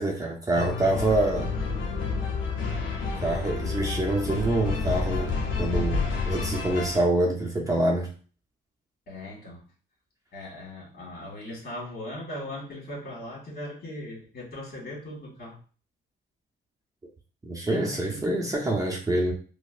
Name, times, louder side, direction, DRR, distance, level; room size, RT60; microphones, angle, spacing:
voice 1, 0.0-1.5 3.2-5.3 5.6-6.0 6.3-8.1 17.4-19.3, right 1 dB, 15° right, -1 dB, 0.8 m, -26 dB
sound 1, 0.5-7.0, left 4 dB, 75° left, 0.8 m, -29 dB
voice 2, 9.1-9.6 10.3-15.6 17.7-18.2, left 1 dB, 50° left, -3 dB, 1.7 m, -39 dB
4.4 x 2.1 x 2.5 m, 0.39 s
cardioid pair, 90°, 20 cm